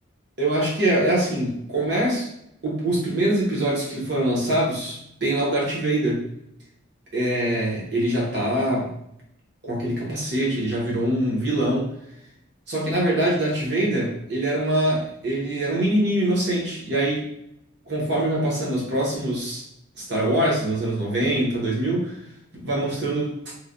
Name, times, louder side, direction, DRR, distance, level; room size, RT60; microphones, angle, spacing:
voice 1, 0.4-2.3 2.6-6.2 7.1-8.9 9.6-11.9 12.7-17.3 17.9-19.6 20.0-22.2 22.5-23.4, right 1 dB, 55° right, -4 dB, 0.9 m, -24 dB
3.2 x 2.2 x 2.5 m, 0.77 s
head